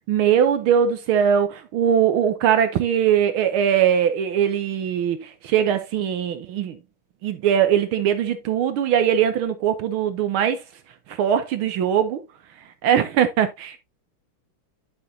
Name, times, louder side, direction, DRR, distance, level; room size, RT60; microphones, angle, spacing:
voice 1, 0.1-6.8 7.2-10.6 11.1-12.2 12.8-13.8, right 9 dB, 75° right, 1.7 m, -21 dB
11.0 x 6.1 x 2.7 m
omnidirectional pair, 2.4 m